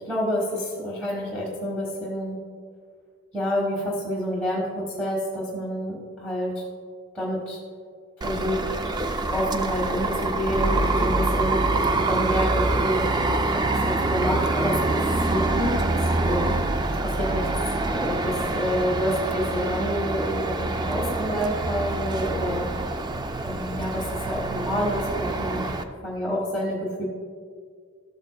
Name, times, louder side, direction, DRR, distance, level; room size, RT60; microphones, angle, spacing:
voice 1, 0.0-2.4 3.3-6.6 7.1-7.6 8.2-9.0 9.3-11.6 12.0-13.1 13.4-15.0 15.3-15.8 16.2-16.6 17.0-17.5 17.9-22.7 23.4-25.7 26.0-27.0, equal, 5° left, -7 dB, 1.3 m, -28 dB
sound 1, 8.2-25.8, right 2 dB, 20° right, 0.3 m, -25 dB
13.5 x 8.0 x 2.2 m, 2.1 s
head